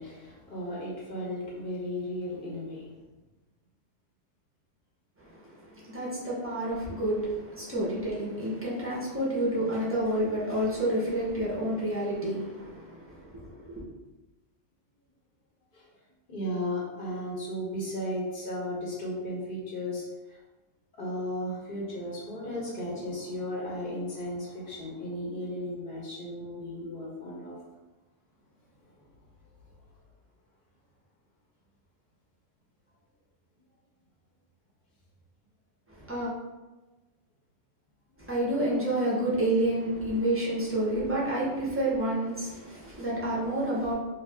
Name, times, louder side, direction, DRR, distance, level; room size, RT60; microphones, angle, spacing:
voice 1, 0.0-2.9 15.7-15.9 16.3-20.4 20.9-27.6 38.2-38.3, left 1 dB, 45° left, -5 dB, 0.9 m, -35 dB
voice 2, 5.2-13.8 35.9-36.3 38.2-43.9, right 1 dB, 15° right, -6 dB, 0.5 m, -29 dB
2.5 x 2.5 x 3.3 m, 1.2 s
omnidirectional pair, 1.3 m